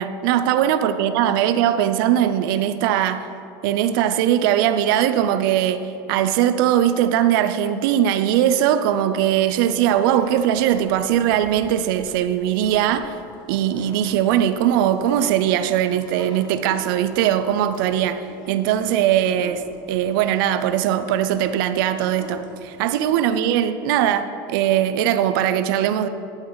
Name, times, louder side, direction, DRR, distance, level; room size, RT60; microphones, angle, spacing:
voice 1, 0.0-3.3 3.6-13.1 13.5-19.6 19.9-26.1, right 10 dB, 70° right, 10 dB, 0.6 m, -20 dB
sound 1, 9.1-23.4, left 2 dB, 35° left, 1.6 m, -45 dB
11.5 x 8.0 x 4.0 m, 2.5 s
supercardioid pair, 130°, 12 cm